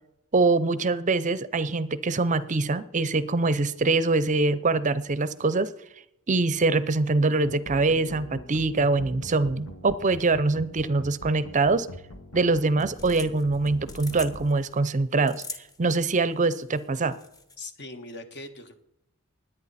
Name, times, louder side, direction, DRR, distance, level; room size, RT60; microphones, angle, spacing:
voice 1, 0.3-5.7 6.3-11.9 12.3-15.4 15.8-17.2, right 3 dB, 35° right, 16 dB, 0.6 m, -24 dB
sound 1, 7.4-14.4, left 1 dB, 90° left, 1.6 m, -43 dB
sound 2, 12.6-17.6, left 3 dB, 15° left, 1.0 m, -44 dB
voice 2, 17.6-18.7, left 2 dB, 55° left, 7 dB, 1.5 m, -40 dB
20.5 x 9.0 x 4.2 m, 0.80 s
head